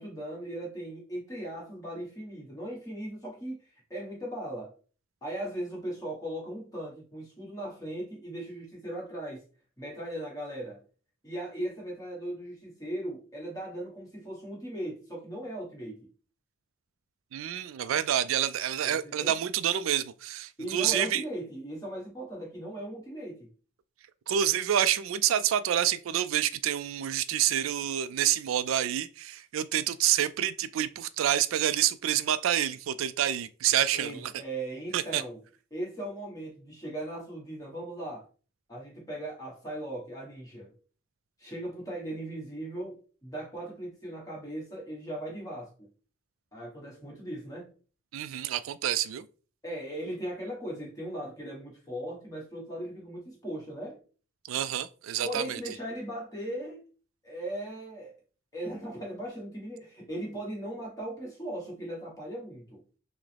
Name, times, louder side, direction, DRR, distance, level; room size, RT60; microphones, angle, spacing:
voice 1, 0.0-4.7 5.2-9.4 9.8-10.8 11.2-16.1 18.8-19.3 20.6-23.5 33.9-35.4 35.7-38.2 38.7-40.7 41.4-45.7 46.5-47.7 49.6-54.0 55.2-56.9 57.2-58.1 58.5-62.8, right 1 dB, 15° left, 1.3 m, -38 dB
voice 2, 17.3-21.2 24.3-34.3 34.9-35.2 48.1-49.3 54.5-55.6, right 10 dB, 70° right, 0.3 m, -28 dB
5.8 x 2.0 x 3.3 m
head